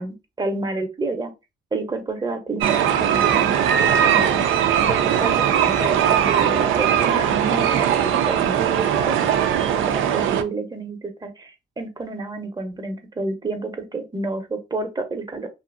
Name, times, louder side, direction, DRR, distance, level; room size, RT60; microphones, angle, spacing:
voice 1, 0.0-1.3 1.7-3.7 4.0-4.5 4.8-5.3 5.8-9.2 9.7-15.5, right 3 dB, 20° right, 0.8 m, -29 dB
sound 1, 2.6-10.4, right 9 dB, 85° right, 0.5 m, -19 dB
2.6 x 2.5 x 2.5 m
cardioid pair, 90°, 20 cm